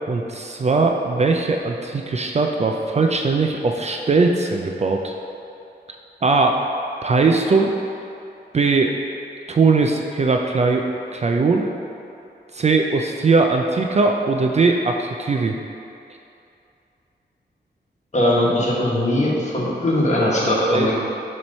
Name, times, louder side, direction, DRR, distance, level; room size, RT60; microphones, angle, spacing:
voice 1, 0.1-5.1 6.2-6.6 7.0-7.7 8.5-9.0 9.5-11.7 12.5-15.6 20.4-20.9, right 3 dB, 40° right, 2 dB, 0.4 m, -20 dB
voice 2, 18.1-20.9, left 1 dB, 40° left, -5 dB, 1.3 m, -20 dB
7.1 x 3.2 x 5.3 m, 2.7 s
wide cardioid pair, 125°, 18 cm